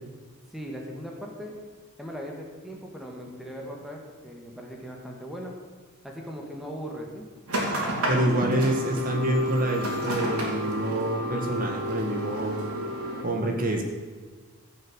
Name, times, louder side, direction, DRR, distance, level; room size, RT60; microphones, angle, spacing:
voice 1, 0.5-1.6 2.0-5.5 6.0-7.3, equal, ahead, -1 dB, 1.8 m, -39 dB
sound 1, 7.5-13.2, equal, 75° right, 3.4 m, -30 dB
voice 2, 8.1-12.7 13.2-13.8, right 1 dB, 40° right, 2 dB, 1.6 m, -27 dB
15.0 x 6.6 x 8.0 m, 1.5 s
head